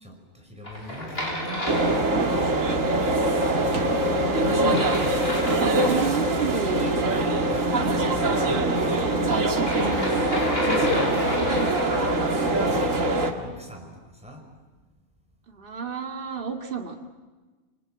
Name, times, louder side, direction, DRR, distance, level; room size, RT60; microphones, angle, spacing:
voice 1, 0.0-2.5 7.5-9.6 12.1-14.4, right 1 dB, 5° right, 1 dB, 5.3 m, -38 dB
sound 1, 0.6-2.6 4.5-6.5 9.5-12.2, equal, 45° left, 6.6 m, -31 dB
sound 2, 1.7-13.3, right 2 dB, 70° right, 2.5 m, -23 dB
voice 2, 3.9-5.2 5.5-7.4 11.2-11.7 15.5-17.0, right 5 dB, 40° right, 3 dB, 2.2 m, -32 dB
28.0 x 23.5 x 8.8 m, 1.3 s
omnidirectional pair, 1.4 m